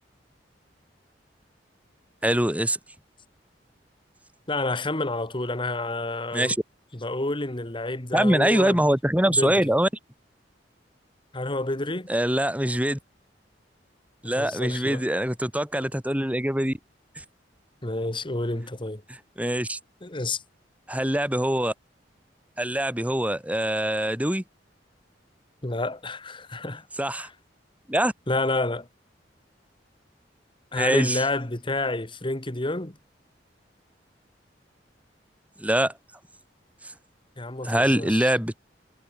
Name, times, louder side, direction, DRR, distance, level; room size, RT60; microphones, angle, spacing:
voice 1, 2.2-2.8 6.3-6.6 8.1-9.9 12.1-13.0 14.2-16.8 17.2-17.3 19.1-19.8 20.9-21.7 22.6-24.4 27.0-27.3 27.9-28.1 30.7-31.2 35.6-35.9 37.6-38.6, right 1 dB, 10° right, 4.0 m, -24 dB
voice 2, 4.5-6.6 6.9-8.8 9.3-9.7 11.3-12.1 14.2-15.1 17.8-19.0 20.0-20.4 25.6-26.9 27.1-27.3 28.3-28.9 30.7-33.0 37.4-38.3, left 2 dB, 30° left, 2.0 m, -29 dB
head